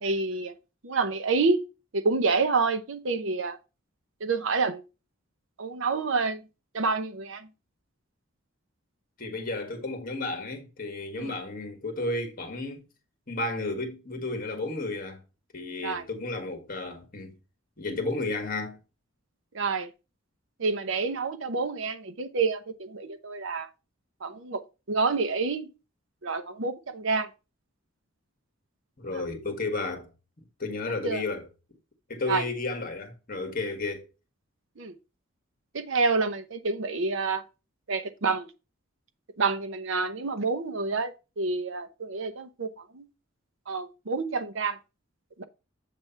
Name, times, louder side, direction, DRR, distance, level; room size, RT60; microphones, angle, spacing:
voice 1, 0.0-0.5 0.8-1.6 1.9-3.6 4.2-4.8 5.6-6.4 6.7-7.5 11.2-11.3 15.8-16.0 19.5-19.9 20.6-23.7 24.2-25.7 26.2-27.3 29.1-29.2 31.0-31.2 32.3-32.4 34.8-34.9 35.7-37.4 37.9-38.5 39.4-41.1 41.4-43.0 43.7-44.8 45.4-45.5, right 4 dB, 65° right, 0.7 m, -28 dB
voice 2, 9.2-12.9 13.3-15.2 15.5-17.3 17.8-18.8 29.0-30.1 30.6-31.5 32.1-34.0, left 2 dB, 45° left, 1.5 m, -32 dB
7.7 x 3.3 x 5.6 m
head